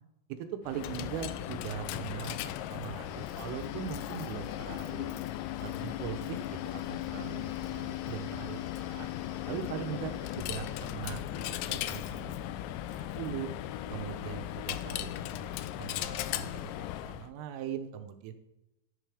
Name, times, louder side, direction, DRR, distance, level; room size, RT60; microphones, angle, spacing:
voice 1, 0.4-5.1 5.6-9.1 9.5-13.5 13.9-16.7 17.0-18.3, right 9 dB, 85° right, 8 dB, 3.3 m, -41 dB
Coin (dropping), 0.6-17.3, left 13 dB, 90° left, 2.6 m, -37 dB
sound 1, 3.0-10.9, left 6 dB, 70° left, 2.5 m, -53 dB
14.5 x 7.4 x 3.4 m, 0.91 s
omnidirectional pair, 5.7 m